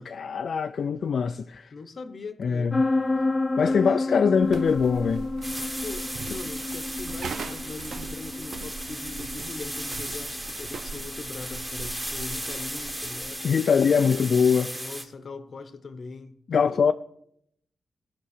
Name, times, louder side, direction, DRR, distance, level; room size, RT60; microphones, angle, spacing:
voice 1, 0.0-1.7 2.4-2.8 3.6-5.2 13.4-14.7 16.5-16.9, left 6 dB, 65° left, 0.4 m, -23 dB
voice 2, 1.7-2.8 3.6-4.3 5.8-13.5 14.7-16.9, left 4 dB, 45° left, 0.8 m, -41 dB
sound 1, 2.7-14.2, left 2 dB, 15° left, 0.7 m, -31 dB
sound 2, 4.4-13.3, right 5 dB, 75° right, 0.5 m, -41 dB
sound 3, 5.4-15.0, right 1 dB, 10° right, 1.5 m, -36 dB
17.5 x 6.0 x 6.4 m
wide cardioid pair, 145°, 0 cm